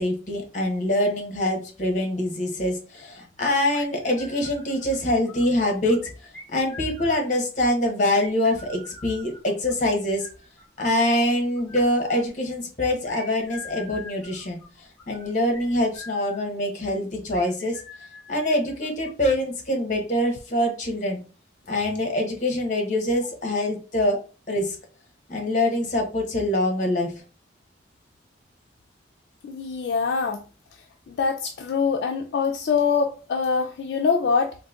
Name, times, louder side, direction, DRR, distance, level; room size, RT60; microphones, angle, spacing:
voice 1, 0.0-6.0 6.5-10.3 10.8-14.6 15.1-17.8 18.3-21.2 21.7-24.2 24.5-24.8 25.3-27.1, left 1 dB, 40° left, 2 dB, 0.8 m, -24 dB
sound 1, 3.7-5.0 5.3-7.4 8.1-11.2 11.6-12.3 13.1-16.5 17.3-19.1, left 2 dB, 5° left, 1.2 m, -45 dB
voice 2, 29.4-30.4 31.1-34.6, left 5 dB, 65° left, 3 dB, 0.3 m, -24 dB
3.8 x 2.5 x 2.4 m, 0.36 s
head